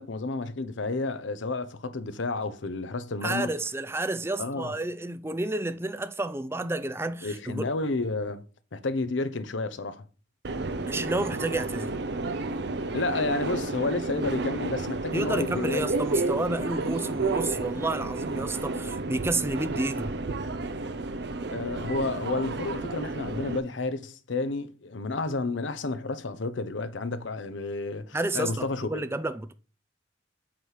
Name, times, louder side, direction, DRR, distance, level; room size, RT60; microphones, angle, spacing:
voice 1, 0.0-3.5 4.4-4.7 7.2-8.4 8.7-10.0 12.9-15.9 21.5-29.0, left 3 dB, 75° left, 0.7 m, -31 dB
voice 2, 3.2-7.7 10.9-11.9 15.1-20.1 28.1-29.5, right 2 dB, 15° right, 0.4 m, -30 dB
Subway metro underground, 10.4-23.6, right 3 dB, 60° right, 0.6 m, -31 dB
8.4 x 3.2 x 5.7 m
head